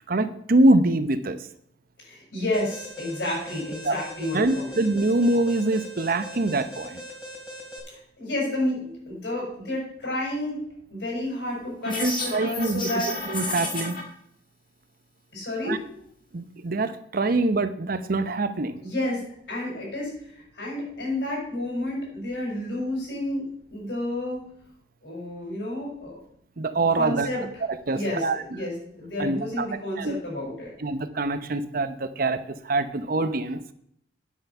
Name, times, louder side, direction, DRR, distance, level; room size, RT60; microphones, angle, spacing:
voice 1, 0.1-1.4 3.8-4.0 4.3-7.0 12.0-12.8 13.3-14.0 15.7-15.8 16.3-18.8 26.6-27.3 27.7-28.4 29.2-29.7 30.0-30.1 30.8-33.6, right 2 dB, 50° right, 11 dB, 0.8 m, -24 dB
voice 2, 2.0-4.8 7.9-10.6 10.9-13.1 15.3-15.8 18.8-19.2 19.5-23.4 23.7-24.4 25.0-26.2 26.6-26.7 27.0-27.4 27.9-30.7, left 1 dB, 75° left, -3 dB, 5.3 m, -30 dB
Alarm, 2.5-7.8, equal, 5° right, 3.0 m, -41 dB
sound 1, 11.8-14.0, left 2 dB, 50° left, 2.2 m, -31 dB
9.6 x 7.7 x 5.5 m, 0.69 s
head